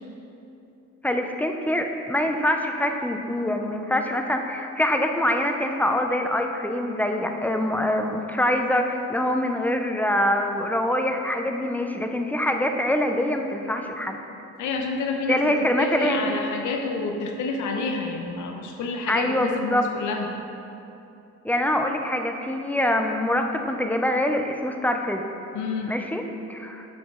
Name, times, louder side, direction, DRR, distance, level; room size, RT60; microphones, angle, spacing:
voice 1, 1.0-14.2 15.3-16.3 19.1-19.8 21.4-25.2 25.9-26.2 26.5-26.8, left 1 dB, 5° left, 4 dB, 0.4 m, -24 dB
voice 2, 14.6-20.3 25.5-26.0, left 4 dB, 80° left, 3 dB, 0.7 m, -29 dB
5.9 x 5.0 x 3.6 m, 2.8 s
cardioid pair, 90°, 30 cm